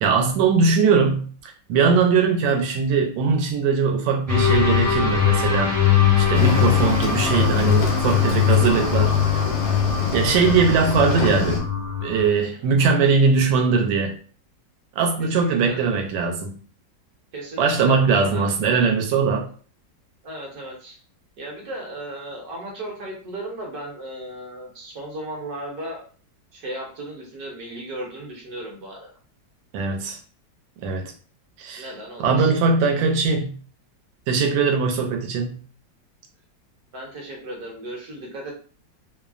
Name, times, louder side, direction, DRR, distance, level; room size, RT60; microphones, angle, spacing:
voice 1, 0.0-5.7 6.2-9.1 10.1-11.6 12.0-14.1 15.0-16.6 17.6-19.5 29.7-30.2 30.8-31.1 31.6-31.9 32.2-33.5 34.3-35.6, right 5 dB, 85° right, 3 dB, 1.3 m, -20 dB
sound 1, 4.3-12.3, left 9 dB, 20° right, 0.4 m, -21 dB
Cricket / Waves surf, 6.3-11.6, left 3 dB, 70° left, 0.6 m, -26 dB
voice 2, 12.4-12.7 15.2-15.8 17.3-17.9 18.3-18.5 20.2-21.0 21.4-26.0 26.5-29.1 31.8-32.5 34.4-34.8 36.9-38.5, right 1 dB, 65° right, -1 dB, 1.2 m, -36 dB
3.1 x 2.0 x 2.4 m, 0.41 s
omnidirectional pair, 2.0 m